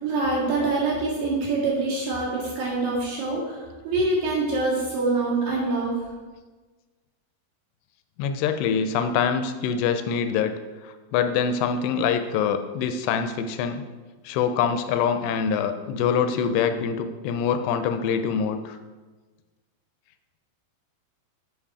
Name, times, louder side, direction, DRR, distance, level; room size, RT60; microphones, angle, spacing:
voice 1, 0.0-5.9, right 3 dB, 55° right, -6 dB, 3.3 m, -25 dB
voice 2, 8.2-13.8 14.3-18.8, left 7 dB, 85° left, 8 dB, 2.6 m, -25 dB
8.4 x 5.8 x 4.7 m, 1.3 s
omnidirectional pair, 5.0 m